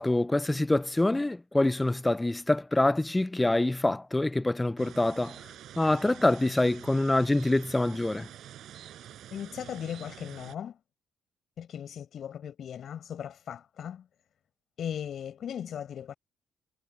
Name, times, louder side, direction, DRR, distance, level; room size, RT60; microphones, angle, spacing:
voice 1, 0.0-5.3 5.8-8.3, left 2 dB, 15° left, 0.4 m, -25 dB
sound 1, 4.8-10.6, right 11 dB, 75° right, 4.8 m, -47 dB
voice 2, 9.3-10.8 11.6-14.1 14.8-16.1, left 9 dB, 65° left, 6.0 m, -38 dB
cardioid pair, 90°, 0 cm